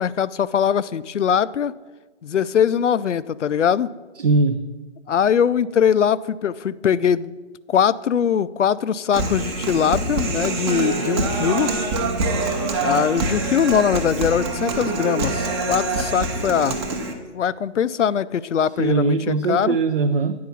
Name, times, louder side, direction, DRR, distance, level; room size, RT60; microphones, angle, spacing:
voice 1, 0.0-1.7 2.2-3.9 5.1-7.3 7.7-11.7 12.8-16.8 17.3-19.8, left 8 dB, 85° left, 16 dB, 0.5 m, -21 dB
voice 2, 4.2-4.7 18.8-20.4, right 4 dB, 50° right, 8 dB, 0.5 m, -20 dB
Human voice, 9.1-17.1, right 3 dB, 20° right, 0.7 m, -25 dB
9.4 x 4.7 x 6.8 m, 1.2 s
figure-of-eight pair, 140°, 35 cm